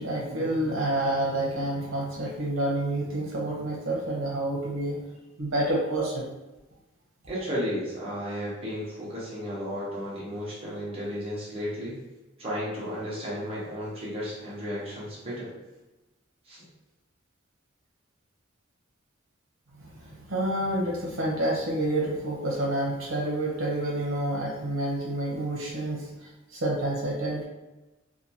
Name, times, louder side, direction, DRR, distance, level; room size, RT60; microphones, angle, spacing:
voice 1, 0.0-5.0 5.4-6.3 20.0-27.4, right 1 dB, 85° right, -4 dB, 0.7 m, -28 dB
voice 2, 7.3-12.0 12.4-15.5 16.5-16.6, equal, 30° right, -7 dB, 0.9 m, -33 dB
2.8 x 2.2 x 2.6 m, 1.1 s
head